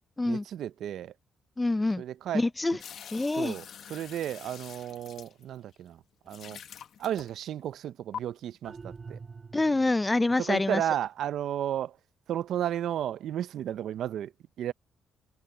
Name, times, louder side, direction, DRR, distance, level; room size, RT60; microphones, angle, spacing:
voice 1, 0.2-1.1 2.0-2.4 3.4-6.0 6.3-6.6 7.0-9.2 10.4-12.0 12.3-14.3 14.6-14.7, right 11 dB, 75° right, 0.6 m, -33 dB
voice 2, 1.6-2.0 2.3-2.8 3.1-3.6 9.5-10.8, left 2 dB, 15° left, 0.4 m, -26 dB
sound 1, 2.8-5.7 6.3-7.6 8.1-8.2, left 8 dB, 65° left, 1.3 m, -45 dB
sound 2, 8.6-10.1, right 4 dB, 35° right, 3.8 m, -45 dB
cardioid pair, 90°, 0 cm